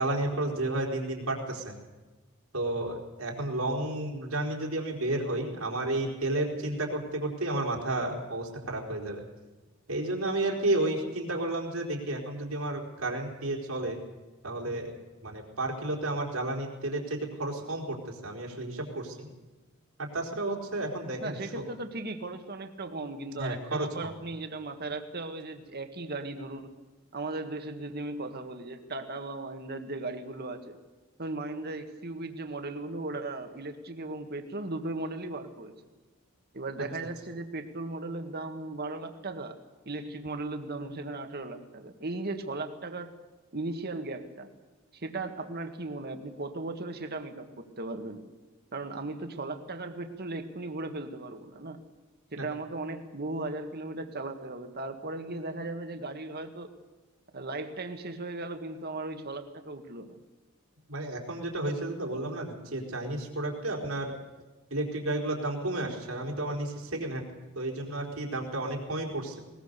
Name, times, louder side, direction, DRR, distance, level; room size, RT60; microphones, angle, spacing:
voice 1, 0.0-1.8 2.5-9.2 9.9-14.0 14.4-14.9 15.2-19.3 20.0-21.6 23.3-24.1 52.4-52.5 60.9-64.1 64.7-67.2 67.5-69.4, right 2 dB, 75° right, 0 dB, 4.3 m, -32 dB
voice 2, 21.2-26.8 27.1-30.8 31.2-35.8 36.5-39.6 39.9-43.1 43.5-44.5 44.9-48.2 48.7-51.8 52.3-56.7 57.3-60.2, right 2 dB, 50° right, 7 dB, 1.9 m, -37 dB
21.0 x 20.5 x 6.8 m, 1.2 s
head